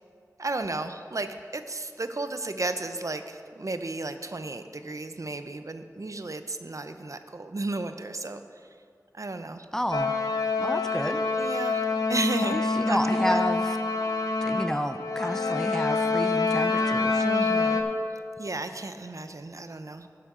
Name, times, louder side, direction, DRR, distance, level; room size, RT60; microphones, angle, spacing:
voice 1, 0.4-8.4 9.1-9.7 11.4-11.8 12.1-13.0 13.2-13.4 17.2-17.8 18.4-20.1, right 2 dB, 60° right, 9 dB, 0.6 m, -33 dB
voice 2, 9.7-10.1 10.6-11.3 12.4-13.8 14.4-17.2, equal, 10° left, 9 dB, 0.5 m, -30 dB
sound 1, 9.9-17.8, left 3 dB, 85° left, 0.8 m, -26 dB
12.5 x 9.3 x 3.7 m, 2.3 s
wide cardioid pair, 55°, 6 cm